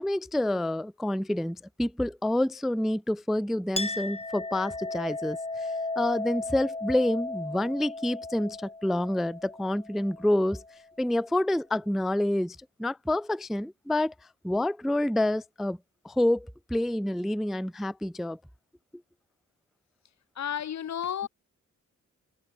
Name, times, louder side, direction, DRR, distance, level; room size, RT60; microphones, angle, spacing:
voice 1, 0.0-10.6 11.0-14.1 14.4-15.8 16.0-18.4, left 1 dB, ahead, 0.3 m, -28 dB
Chink clink, 3.8-10.8, left 2 dB, 20° left, 1.4 m, -36 dB
voice 2, 20.3-21.3, left 9 dB, 60° left, 0.6 m, -32 dB
cardioid pair, 85°, 32 cm